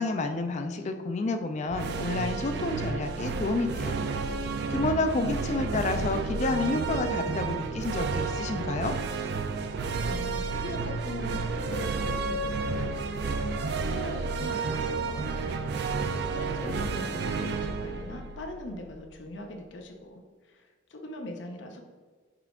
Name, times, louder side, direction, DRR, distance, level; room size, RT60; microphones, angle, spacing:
voice 1, 0.0-3.9 4.3-9.0, left 3 dB, 35° left, 7 dB, 0.3 m, -30 dB
sound 1, 1.7-19.1, right 4 dB, 55° right, 0.3 m, -31 dB
voice 2, 10.0-15.5 15.8-21.8, left 1 dB, 70° left, 3 dB, 0.6 m, -41 dB
5.7 x 2.4 x 3.5 m, 1.5 s
head